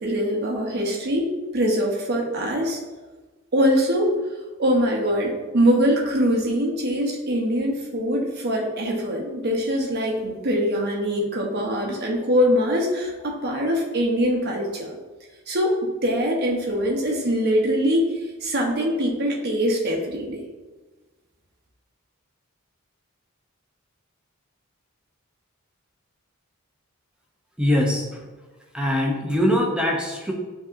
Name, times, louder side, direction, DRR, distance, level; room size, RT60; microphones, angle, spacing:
voice 1, 0.0-2.8 3.5-4.2 4.6-14.9 15.5-18.0 18.4-20.4, equal, 50° right, -1 dB, 0.8 m, -23 dB
voice 2, 27.6-28.2 28.7-30.3, left 1 dB, 5° right, -1 dB, 0.5 m, -22 dB
6.9 x 2.8 x 2.5 m, 1.2 s
head